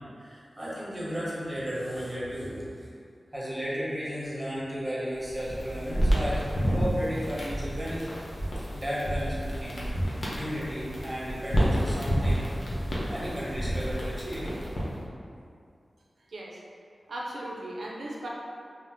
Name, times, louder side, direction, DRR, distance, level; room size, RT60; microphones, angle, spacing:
voice 1, 0.2-2.9 3.3-8.0 8.7-9.3 9.6-12.5 13.1-14.5, equal, 20° right, -8 dB, 1.0 m, -34 dB
sound 1, 5.2-15.0, equal, 70° left, 0.6 m, -30 dB
voice 2, 16.2-16.6 17.1-18.3, right 1 dB, 85° right, -4 dB, 0.4 m, -37 dB
2.7 x 2.0 x 3.4 m, 2.4 s
cardioid pair, 55°, 0 cm